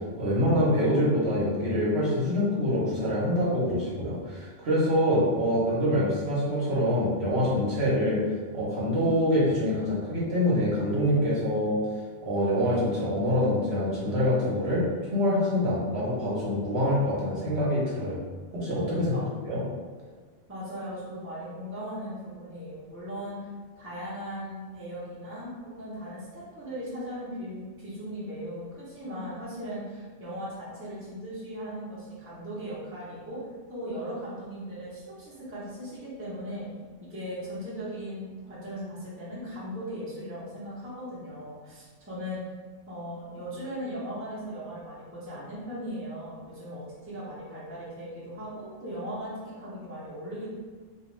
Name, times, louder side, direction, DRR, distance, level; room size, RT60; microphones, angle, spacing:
voice 1, 0.2-8.2 8.5-11.8 12.2-14.8 15.1-18.2 18.5-19.6, equal, 60° right, -7 dB, 1.0 m, -25 dB
voice 2, 20.5-23.5 23.8-33.4 33.7-36.7 37.0-42.4 42.9-50.5, equal, 15° right, -9 dB, 0.6 m, -38 dB
2.3 x 2.3 x 3.0 m, 1.5 s
omnidirectional pair, 1.3 m